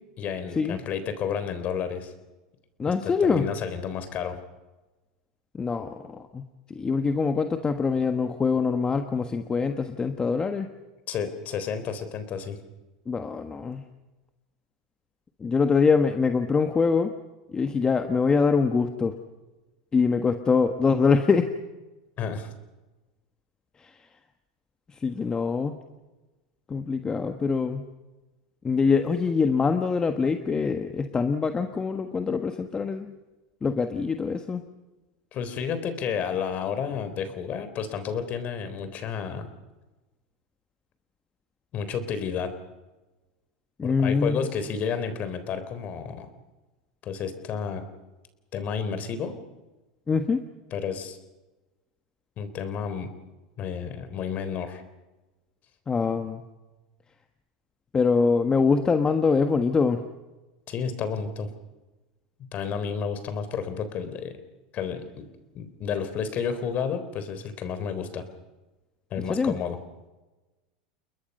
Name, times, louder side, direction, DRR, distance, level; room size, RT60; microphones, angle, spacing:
voice 1, 0.2-2.1 2.9-4.4 11.1-12.6 22.2-22.5 35.3-39.5 41.7-42.5 43.8-46.3 47.0-47.8 48.5-49.4 50.7-51.2 52.4-53.1 53.6-54.8 60.7-61.5 62.4-64.4 64.7-65.3 65.5-68.2 69.1-69.8, left 7 dB, 40° left, 11 dB, 3.7 m, -31 dB
voice 2, 2.8-3.5 5.5-6.4 6.7-10.7 13.1-13.8 15.4-17.1 17.5-19.1 19.9-21.5 23.8-23.9 25.0-25.7 26.7-27.9 28.6-33.1 33.6-34.6 43.8-44.5 50.1-50.4 55.9-56.4 57.9-60.0 69.3-69.5, left 5 dB, 20° left, 7 dB, 1.4 m, -24 dB
30.0 x 21.0 x 5.5 m, 1.1 s
hypercardioid pair, 110°, 4 cm